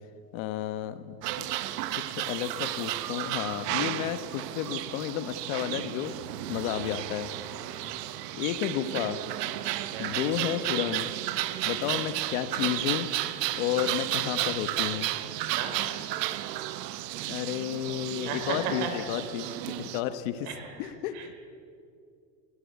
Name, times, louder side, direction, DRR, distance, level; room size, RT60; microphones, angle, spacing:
voice 1, 0.3-1.5 2.0-6.1 6.5-7.3 8.3-9.2 10.0-11.1 11.6-13.1 13.6-15.1 17.3-20.5 20.8-21.3, left 11 dB, 55° left, 11 dB, 1.2 m, -32 dB
sound 1, 1.2-20.0, right 14 dB, 90° right, 1.2 m, -33 dB
voice 2, 7.6-8.1 9.7-10.1 11.5-11.8 15.4-16.0 18.2-19.2 20.4-21.4, right 6 dB, 65° right, 4 dB, 5.1 m, -37 dB
18.5 x 18.5 x 8.4 m, 2.4 s
supercardioid pair, 155°, 47 cm